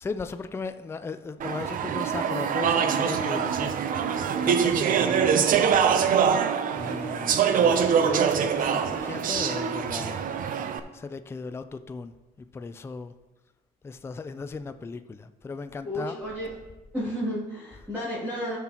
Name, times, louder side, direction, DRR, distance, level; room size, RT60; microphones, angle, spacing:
voice 1, 0.0-3.7 4.4-5.7 6.7-10.2 10.9-12.1 12.5-13.1 13.8-16.1, left 4 dB, 15° left, 10 dB, 0.4 m, -36 dB
Speech / Chatter, 1.4-10.8, right 7 dB, 55° right, 0.6 m, -24 dB
voice 2, 15.8-16.6 16.9-18.6, equal, 10° right, -11 dB, 2.9 m, -32 dB
12.5 x 5.9 x 3.0 m, 1.1 s
cardioid pair, 110°, 17 cm